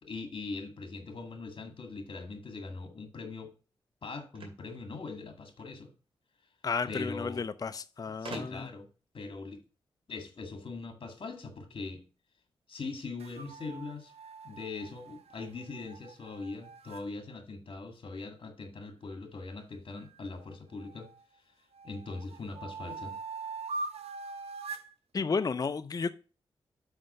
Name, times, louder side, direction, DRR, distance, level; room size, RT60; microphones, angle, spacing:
voice 1, 0.0-3.5 4.0-5.9 6.9-7.4 8.2-8.9 9.1-9.6 10.1-12.0 12.7-14.1 14.4-21.1 21.8-23.2, left 3 dB, 55° left, 1.9 m, -41 dB
sound 1, 4.3-5.7 6.8-6.9 7.2-7.3 8.2-8.9, right 3 dB, 60° right, 2.3 m, -46 dB
voice 2, 6.6-8.7 25.1-26.1, left 5 dB, 35° left, 0.5 m, -32 dB
sound 2, 13.2-17.0 20.0-21.2 21.7-24.9, right 3 dB, 85° right, 0.8 m, -43 dB
5.9 x 5.2 x 6.6 m
cardioid pair, 70°, 10 cm